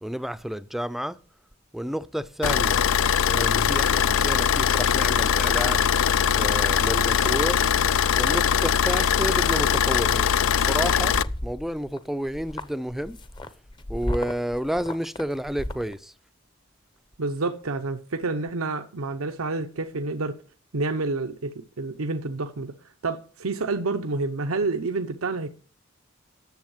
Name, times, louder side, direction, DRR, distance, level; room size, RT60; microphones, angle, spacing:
voice 1, 0.0-1.2 1.7-2.8 3.2-5.9 6.3-7.6 8.1-11.2 11.4-13.2 13.9-16.1, equal, ahead, 0.4 m, -30 dB
Car / Idling, 2.4-11.2, left 8 dB, 70° left, 0.4 m, -21 dB
sound 1, 9.5-9.8 10.3-10.6 10.9-12.0 12.3-15.9, left 1 dB, 20° left, 0.8 m, -34 dB
voice 2, 17.2-20.3 20.7-22.7 23.0-25.5, right 3 dB, 85° right, 0.8 m, -28 dB
10.5 x 7.4 x 7.3 m
head